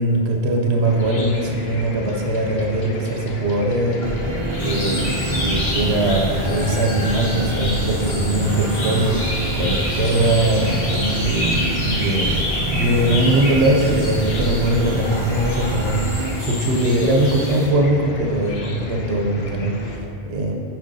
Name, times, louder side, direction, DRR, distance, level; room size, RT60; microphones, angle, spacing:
voice 1, 0.0-4.0 4.6-12.4 12.7-20.0 20.3-20.6, right 1 dB, 80° right, 1 dB, 0.9 m, -21 dB
Chicken rooster / Cricket, 0.8-20.0, left 3 dB, 70° left, 0.9 m, -31 dB
sound 1, 4.0-16.3, right 2 dB, 40° right, 0.4 m, -27 dB
sound 2, 4.6-17.7, left 1 dB, 90° left, 1.4 m, -29 dB
9.1 x 4.4 x 2.6 m, 2.8 s
omnidirectional pair, 1.1 m